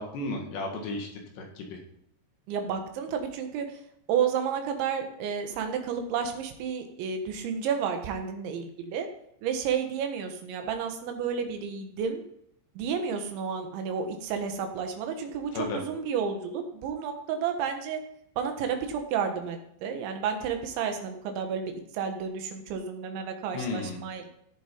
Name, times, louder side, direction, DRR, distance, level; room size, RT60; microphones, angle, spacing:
voice 1, 0.0-1.8 15.5-15.8 23.5-24.0, left 2 dB, 70° left, 2 dB, 4.0 m, -34 dB
voice 2, 2.5-3.7 4.1-9.1 9.4-12.2 12.8-18.0 18.4-24.3, right 7 dB, 80° right, 5 dB, 3.7 m, -31 dB
17.5 x 7.5 x 4.5 m, 0.72 s
omnidirectional pair, 5.2 m